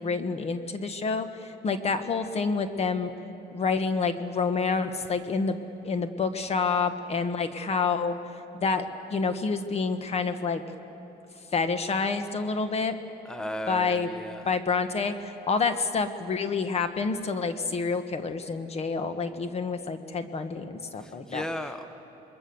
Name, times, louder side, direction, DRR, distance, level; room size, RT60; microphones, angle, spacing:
voice 1, 0.0-3.1 3.5-5.6 5.8-8.1 8.6-10.6 11.5-12.9 13.7-14.1 14.4-21.4, left 4 dB, 40° left, 9 dB, 1.5 m, -28 dB
voice 2, 13.2-14.5 21.0-21.8, equal, 5° left, 8 dB, 1.0 m, -35 dB
27.5 x 22.0 x 7.0 m, 2.9 s
cardioid pair, 110°, 17 cm